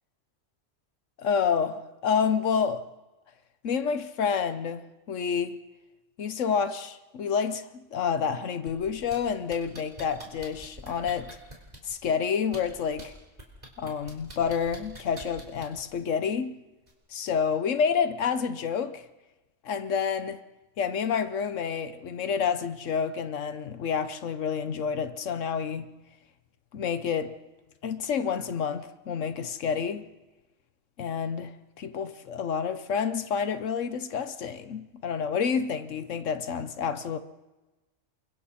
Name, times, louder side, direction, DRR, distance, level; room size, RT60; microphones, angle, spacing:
voice 1, 1.2-2.8 3.6-5.6 6.2-11.4 11.8-13.1 13.8-16.6 17.1-19.0 19.6-20.4 20.8-25.9 26.7-27.3 27.8-30.1 31.0-37.2, left 6 dB, 85° left, 1.3 m, -29 dB
sound 1, 8.7-9.2 9.5-11.9 12.4-13.0 13.4-15.8 16.9-17.0, right 1 dB, 35° right, 4.1 m, -44 dB
29.5 x 23.5 x 4.3 m
omnidirectional pair, 1.3 m